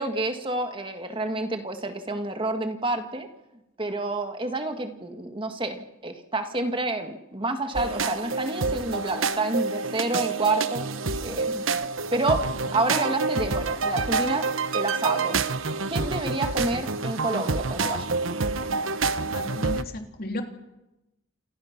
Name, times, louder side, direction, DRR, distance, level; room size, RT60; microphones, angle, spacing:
voice 1, 0.0-3.3 3.8-10.9 11.2-11.6 12.1-14.4 14.7-15.4 15.9-18.1, right 2 dB, 25° right, 6 dB, 1.8 m, -29 dB
sound 1, 7.7-19.8, right 4 dB, 80° right, 1.2 m, -27 dB
voice 2, 19.3-20.4, left 1 dB, 50° left, 4 dB, 3.2 m, -34 dB
29.5 x 28.0 x 6.0 m, 0.97 s
head